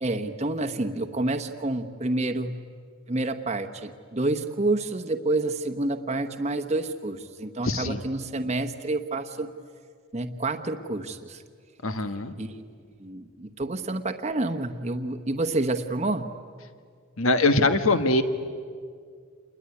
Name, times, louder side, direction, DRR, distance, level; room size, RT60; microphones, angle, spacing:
voice 1, 0.0-2.6 3.1-9.5 10.1-11.4 12.4-12.6 13.0-16.3, right 2 dB, 30° right, 6 dB, 1.0 m, -28 dB
voice 2, 7.6-8.0 11.8-12.3 17.2-18.2, left 2 dB, 70° left, 9 dB, 1.5 m, -22 dB
28.0 x 21.0 x 9.8 m, 2.1 s
head